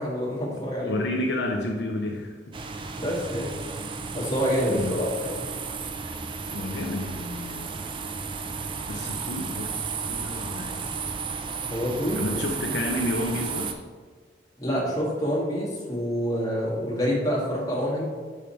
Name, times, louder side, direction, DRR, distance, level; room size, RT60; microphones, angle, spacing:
voice 1, 0.0-0.9 3.0-3.6 4.1-5.5 11.7-12.3 14.6-18.0, equal, 20° left, -6 dB, 1.8 m, -27 dB
voice 2, 0.5-2.6 4.7-5.0 6.5-7.8 8.9-9.7 10.1-10.9 12.2-13.8, left 1 dB, 65° left, 2 dB, 0.6 m, -30 dB
sound 1, 2.5-13.7, right 5 dB, 25° right, 0.3 m, -33 dB
5.2 x 5.0 x 4.4 m, 1.6 s
head